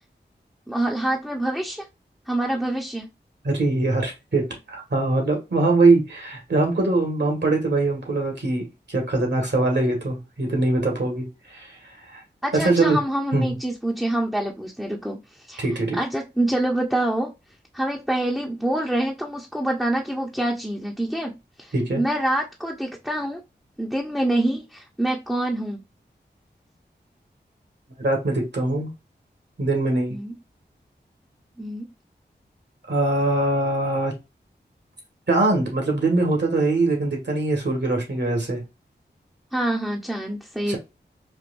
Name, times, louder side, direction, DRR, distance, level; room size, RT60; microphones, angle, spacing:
voice 1, 0.7-1.9 2.3-3.1 12.4-15.7 15.9-17.3 17.7-21.3 21.6-23.4 23.8-25.8 30.1-30.3 31.6-31.9 39.5-40.7, right 1 dB, ahead, 0.7 m, -26 dB
voice 2, 3.4-11.8 12.1-12.2 12.6-13.0 13.3-13.5 15.6-16.0 21.7-22.0 28.0-28.9 29.6-30.1 32.9-34.1 35.3-38.6 40.7-40.8, right 2 dB, 65° right, 1.8 m, -22 dB
4.5 x 2.5 x 2.5 m
cardioid pair, 50°, 19 cm